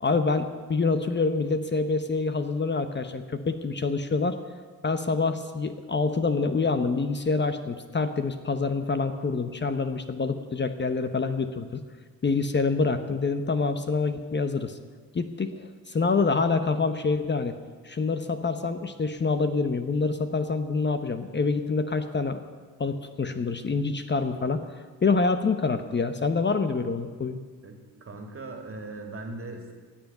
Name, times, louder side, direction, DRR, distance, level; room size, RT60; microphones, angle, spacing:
voice 1, 0.0-4.4 4.8-11.8 12.2-14.8 15.1-17.6 17.8-22.4 22.8-24.7 25.0-27.4, left 4 dB, 30° left, 9 dB, 0.9 m, -26 dB
voice 2, 27.6-29.7, right 2 dB, 35° right, 4 dB, 2.3 m, -39 dB
16.5 x 7.3 x 9.1 m, 1.5 s
cardioid pair, 100°, 36 cm